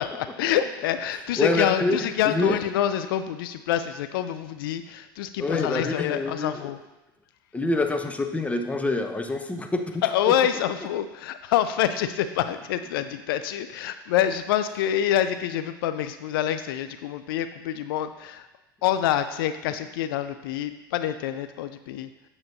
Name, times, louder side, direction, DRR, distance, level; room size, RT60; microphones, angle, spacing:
voice 1, 0.0-6.8 10.0-18.5 18.8-22.1, left 10 dB, 75° left, 11 dB, 0.4 m, -26 dB
voice 2, 1.4-2.6 5.4-6.7 7.5-10.3, left 2 dB, 10° left, 5 dB, 0.7 m, -26 dB
8.7 x 7.0 x 2.7 m, 1.0 s
hypercardioid pair, 95°, 12 cm